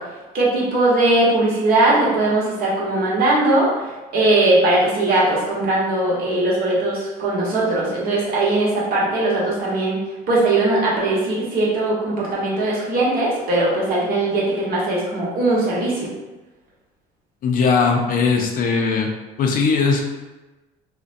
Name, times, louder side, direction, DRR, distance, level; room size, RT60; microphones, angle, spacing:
voice 1, 0.3-10.0 10.3-16.1, right 2 dB, 55° right, -5 dB, 1.0 m, -19 dB
voice 2, 17.4-19.1 19.4-20.0, left 5 dB, 50° left, 2 dB, 0.5 m, -19 dB
2.5 x 2.1 x 2.5 m, 1.1 s
supercardioid pair, 85°, 18 cm